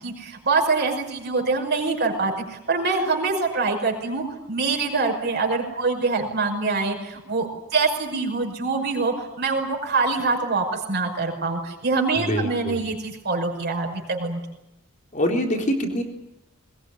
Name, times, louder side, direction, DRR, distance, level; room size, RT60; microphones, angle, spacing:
voice 1, 0.0-14.4, right 4 dB, 50° right, 2 dB, 5.6 m, -24 dB
voice 2, 12.1-12.8 15.1-16.0, equal, 35° left, 3 dB, 3.8 m, -24 dB
22.0 x 20.5 x 10.0 m, 0.92 s
head